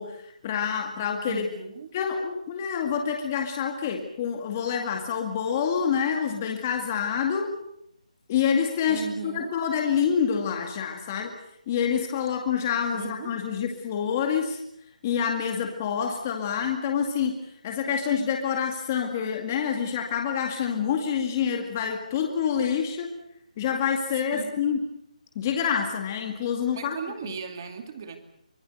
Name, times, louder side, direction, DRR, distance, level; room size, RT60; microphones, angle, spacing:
voice 1, 0.0-1.4 1.9-7.5 8.3-11.3 11.7-14.6 15.0-17.4 17.6-23.1 23.6-24.8 25.4-27.0, left 7 dB, 20° left, 3 dB, 2.2 m, -27 dB
voice 2, 1.3-1.9 8.9-9.6 12.9-13.4 24.3-24.5 26.7-28.2, right 6 dB, 30° right, 7 dB, 2.6 m, -37 dB
25.0 x 20.0 x 8.0 m, 0.73 s
hypercardioid pair, 170°, 4 cm